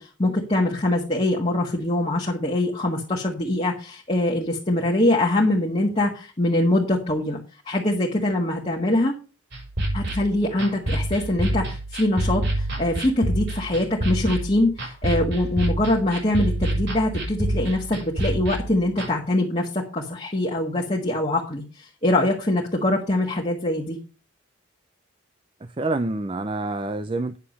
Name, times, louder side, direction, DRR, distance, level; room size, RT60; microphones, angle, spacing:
voice 1, 0.0-7.4 7.7-9.1 9.9-24.0, left 1 dB, 30° left, 1.5 m, -23 dB
sound 1, 9.5-19.1, right 1 dB, 65° right, 5.5 m, -27 dB
voice 2, 25.6-27.4, right 2 dB, 25° right, 0.5 m, -27 dB
9.5 x 6.6 x 5.3 m
head